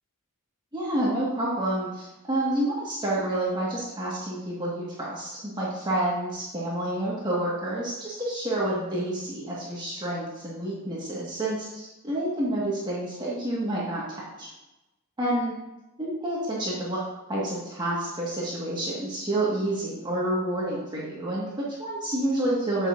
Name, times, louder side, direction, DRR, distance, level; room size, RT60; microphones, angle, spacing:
voice 1, 0.7-14.5 15.2-15.5 16.0-17.0 17.3-22.9, right 1 dB, 20° right, -6 dB, 1.6 m, -29 dB
7.9 x 7.7 x 2.6 m, 0.98 s
head